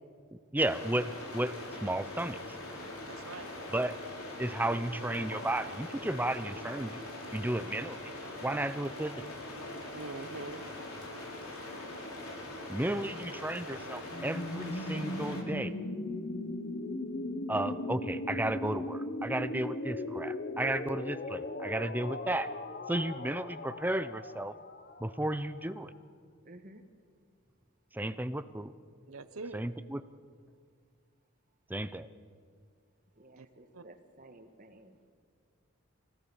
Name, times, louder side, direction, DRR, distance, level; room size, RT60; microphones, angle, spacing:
voice 1, 0.5-1.5 1.8-2.4 3.7-3.9 4.4-7.0 7.3-8.1 8.4-9.2 12.7-15.7 17.5-22.5 22.9-24.5 25.0-25.9 27.9-28.7 29.5-30.0 31.7-32.1, right 1 dB, 10° right, 12 dB, 0.6 m, -33 dB
sound 1, 0.6-15.4, left 1 dB, 85° left, 4.0 m, -42 dB
voice 2, 3.1-3.5 9.9-10.6 29.1-29.6 33.4-33.5 33.7-33.8, right 3 dB, 80° right, 11 dB, 0.9 m, -43 dB
sound 2, 14.1-25.8, left 1 dB, 45° left, 1.0 m, -38 dB
voice 3, 26.4-26.8 33.2-35.0, right 1 dB, 40° right, 7 dB, 1.6 m, -54 dB
25.5 x 17.0 x 7.1 m, 2.1 s
head